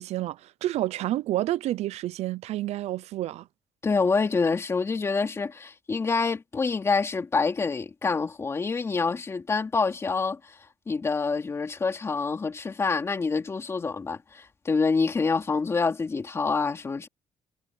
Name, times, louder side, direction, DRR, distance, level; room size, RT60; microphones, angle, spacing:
voice 1, 0.0-3.5, right 14 dB, 70° right, 0.6 m, -29 dB
voice 2, 3.8-10.6 10.9-17.1, left 4 dB, 25° left, 3.0 m, -26 dB
cardioid pair, 150°, 11 cm